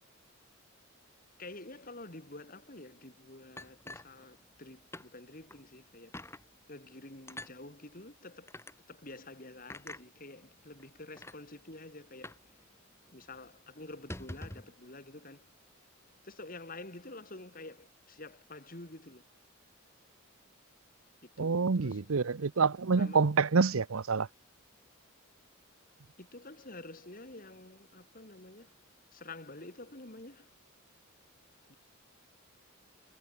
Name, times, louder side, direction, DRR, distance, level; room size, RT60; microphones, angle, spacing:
voice 1, 1.4-6.3 6.7-8.5 8.9-12.6 13.1-15.5 16.2-19.2 21.4-22.1 23.0-23.3 26.2-28.7 29.1-30.5 31.7-31.8, left 2 dB, 40° left, 3.4 m, -49 dB
sound 1, 3.6-4.6 4.9-5.1 5.5-5.6 6.1-6.4 7.3-7.5 8.5-8.7 9.7-10.0 10.8-10.9 11.2-11.4 12.2-12.5 12.7-12.8 13.2-13.4 13.9-14.7, left 1 dB, 10° left, 1.5 m, -45 dB
voice 2, 21.4-24.3, right 4 dB, 80° right, 0.7 m, -27 dB
head